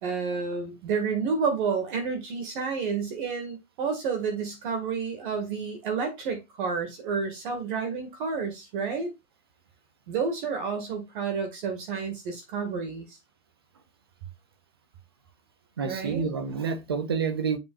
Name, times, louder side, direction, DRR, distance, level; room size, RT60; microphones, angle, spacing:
voice 1, 0.0-9.1 10.1-13.0 15.8-16.3, right 5 dB, 35° right, 2.0 m, -30 dB
voice 2, 15.8-17.6, right 5 dB, 20° right, 0.4 m, -28 dB
7.4 x 6.1 x 2.4 m
hypercardioid pair, 150°, 43 cm